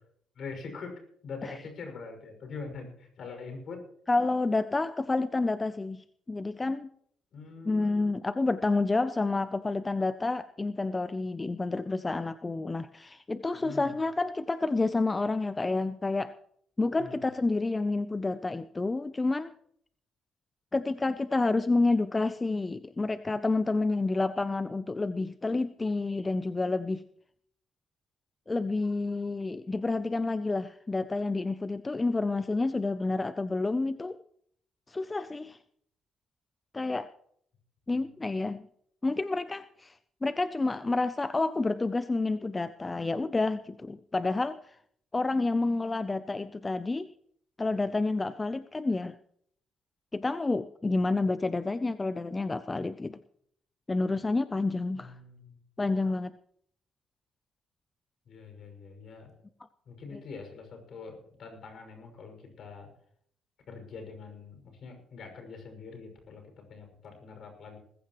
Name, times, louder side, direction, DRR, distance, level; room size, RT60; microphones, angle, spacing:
voice 1, 0.3-3.9 7.3-8.1 13.5-14.0 17.0-17.3 37.9-38.1 54.9-55.6 58.3-59.3 59.9-62.9 63.7-67.8, left 4 dB, 65° left, 4 dB, 5.9 m, -44 dB
voice 2, 4.1-6.9 7.6-16.3 16.8-19.5 20.7-27.0 28.5-34.2 34.9-35.6 36.7-37.1 37.9-38.7 39.0-39.9 40.2-44.8 45.1-47.1 47.6-49.2 50.1-53.2 53.9-55.1 55.8-56.3, left 3 dB, 20° left, 12 dB, 0.5 m, -29 dB
19.5 x 15.0 x 3.1 m, 0.65 s
cardioid pair, 90°, 0 cm